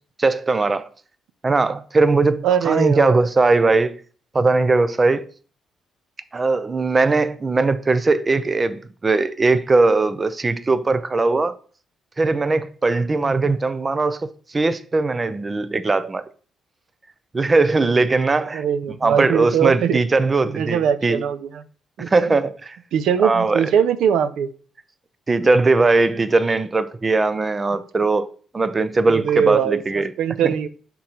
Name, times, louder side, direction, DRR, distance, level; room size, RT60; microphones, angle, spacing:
voice 1, 0.2-0.9 1.4-4.0 4.3-5.2 6.3-11.5 12.2-16.3 17.3-18.6 19.0-21.2 22.1-22.8 23.2-23.7 25.3-28.3 28.5-30.1 30.4-30.5, right 3 dB, 25° right, 0.5 m, -19 dB
voice 2, 2.4-3.2 13.1-13.5 18.5-20.0 20.4-21.6 22.0-22.1 22.9-24.5 29.0-29.8 30.2-30.7, right 8 dB, 80° right, 0.5 m, -21 dB
5.9 x 3.8 x 4.3 m
cardioid pair, 90°, 0 cm